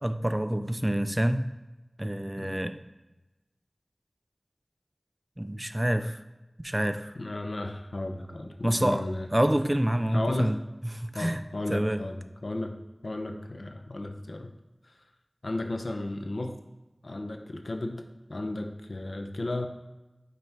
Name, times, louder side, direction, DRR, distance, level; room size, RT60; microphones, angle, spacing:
voice 1, 0.0-1.5 2.0-2.8 5.4-6.2 6.6-7.1 8.6-9.0 9.3-10.6 10.9-11.4 11.7-12.0, right 1 dB, 25° right, 10 dB, 0.4 m, -27 dB
voice 2, 7.1-9.3 10.1-10.6 11.1-12.8 13.0-14.5 14.8-15.0 15.4-16.5 17.0-18.0 18.3-19.7, left 2 dB, 80° left, 5 dB, 0.6 m, -34 dB
5.6 x 4.1 x 4.6 m, 1.1 s
wide cardioid pair, 50°, 0 cm